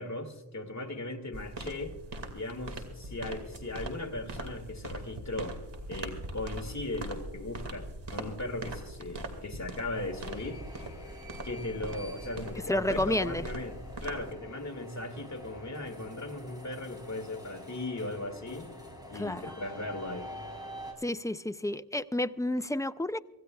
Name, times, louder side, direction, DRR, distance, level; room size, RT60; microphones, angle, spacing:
voice 1, 0.0-1.9 2.3-5.6 5.9-10.6 11.4-18.7 19.1-20.3, left 2 dB, 40° left, 2.2 m, -38 dB
sound 1, 1.3-14.3, right 1 dB, 85° right, 2.2 m, -41 dB
sound 2, 9.9-20.9, left 1 dB, 10° right, 4.4 m, -46 dB
voice 2, 12.7-13.4 19.2-19.5 21.0-23.2, left 1 dB, 10° left, 0.4 m, -30 dB
25.0 x 15.5 x 2.3 m
wide cardioid pair, 85°, 42 cm